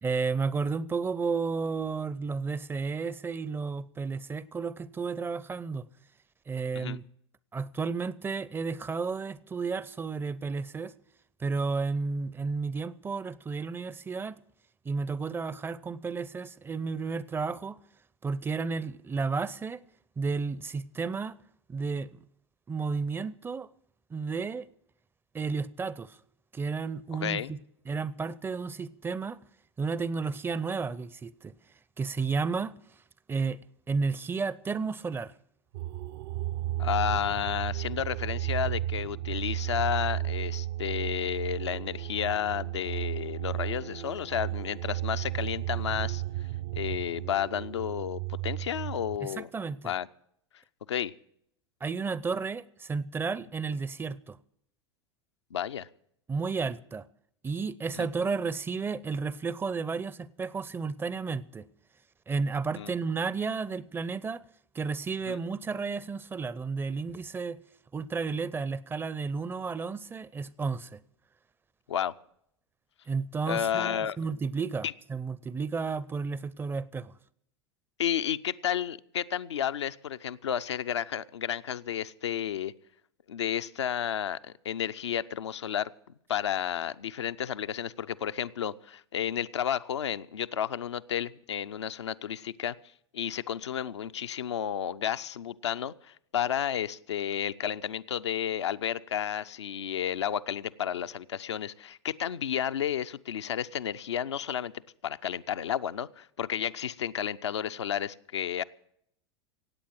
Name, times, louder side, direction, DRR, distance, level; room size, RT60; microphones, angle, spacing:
voice 1, 0.0-5.9 6.5-7.0 7.5-10.9 11.4-14.4 14.8-17.8 18.2-19.8 20.2-21.4 21.7-22.2 22.7-23.7 24.1-24.7 25.3-26.2 26.5-27.6 27.9-29.4 29.8-31.5 32.0-32.8 33.3-33.6 33.9-35.3 49.2-49.9 51.8-54.4 56.3-57.1 57.4-61.7 62.3-64.4 64.7-67.6 67.9-71.0 73.1-77.1, right 4 dB, 15° right, 0.5 m, -32 dB
voice 2, 27.1-27.5 36.8-46.2 46.7-49.5 49.8-50.1 50.9-51.1 55.5-55.9 58.0-58.1 62.8-62.9 65.3-65.4 71.9-72.1 73.5-74.2 74.8-74.9 78.0-82.7 83.3-85.9 86.3-92.8 93.1-104.7 105.0-108.6, left 9 dB, 75° left, 0.5 m, -32 dB
sound 1, 35.7-49.2, right 14 dB, 60° right, 0.6 m, -34 dB
17.0 x 8.5 x 7.7 m
figure-of-eight pair, 85°, 15 cm